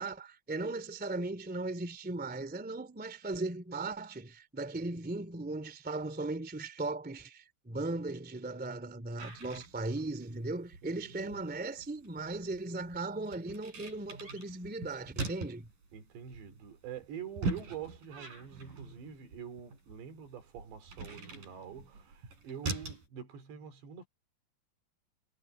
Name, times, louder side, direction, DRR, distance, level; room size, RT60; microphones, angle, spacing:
voice 1, 0.0-15.7, right 2 dB, 5° right, 1.7 m, -37 dB
sound 1, 9.2-23.1, right 3 dB, 50° right, 9.1 m, -43 dB
voice 2, 11.0-11.4 15.9-24.1, right 8 dB, 80° right, 5.5 m, -46 dB
omnidirectional pair, 5.0 m